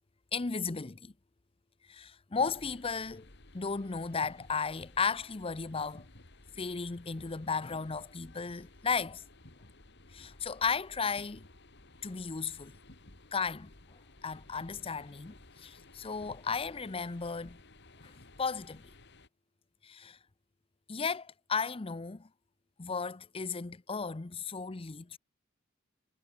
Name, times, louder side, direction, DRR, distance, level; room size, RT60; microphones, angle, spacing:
voice 1, 0.3-1.1 1.9-3.3 3.5-6.1 6.6-9.2 10.1-11.5 12.0-12.7 13.3-13.7 14.2-17.6 18.0-18.1 18.4-18.8 19.8-20.2 20.9-22.3 22.8-25.2, left 5 dB, 30° left, 0.6 m, -35 dB
sound 1, 2.4-19.3, left 2 dB, 60° left, 3.1 m, -56 dB
head